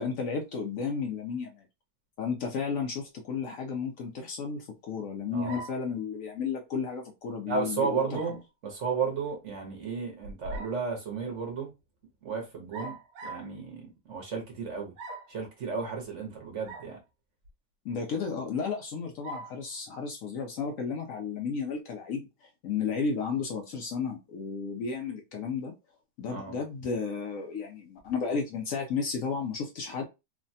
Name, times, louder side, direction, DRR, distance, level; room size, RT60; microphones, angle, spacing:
voice 1, 0.0-1.6 2.2-8.2 17.8-25.7 26.2-30.0, left 5 dB, 65° left, 0.9 m, -33 dB
sound 1, 5.5-5.9 8.1-8.4 10.2-10.8 12.7-13.5 15.0-15.4 16.6-16.9 17.4-17.5 19.2-19.6, right 2 dB, 75° right, 1.2 m, -41 dB
voice 2, 7.5-11.7 12.2-13.0 13.2-14.9 15.3-17.0 26.3-26.6, right 5 dB, 55° right, 1.0 m, -33 dB
3.2 x 2.2 x 2.6 m
omnidirectional pair, 1.7 m